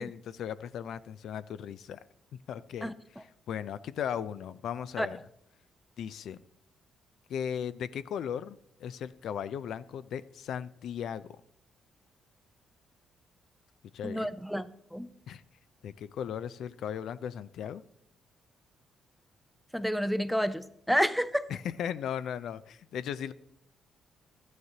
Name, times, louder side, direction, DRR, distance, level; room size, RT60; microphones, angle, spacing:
voice 1, 0.0-2.0 2.5-5.2 6.0-6.4 7.3-11.3 13.9-14.3 15.3-15.4 15.8-17.8 21.5-23.3, left 8 dB, 70° left, 15 dB, 0.3 m, -37 dB
voice 2, 14.0-15.1 19.7-21.5, equal, ahead, 14 dB, 0.5 m, -29 dB
13.0 x 9.4 x 2.8 m, 0.77 s
cardioid pair, 90°, 0 cm